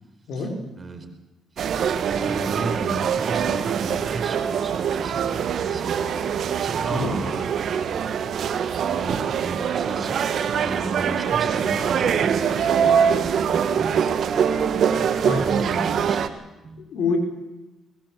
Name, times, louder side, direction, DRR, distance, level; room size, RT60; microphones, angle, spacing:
voice 1, 0.3-0.6 5.9-6.0 6.5-6.6 6.9-7.2 15.2-15.5 16.8-17.2, left 4 dB, 70° left, 4 dB, 4.7 m, -26 dB
sound 1, 1.6-16.3, right 7 dB, 65° right, 1.6 m, -23 dB
voice 2, 1.9-6.1 6.6-7.4 8.8-14.2 15.4-16.2 16.6-16.8, right 2 dB, 40° right, 6 dB, 4.7 m, -34 dB
22.0 x 20.0 x 7.6 m, 1.0 s
supercardioid pair, 55°, 0 cm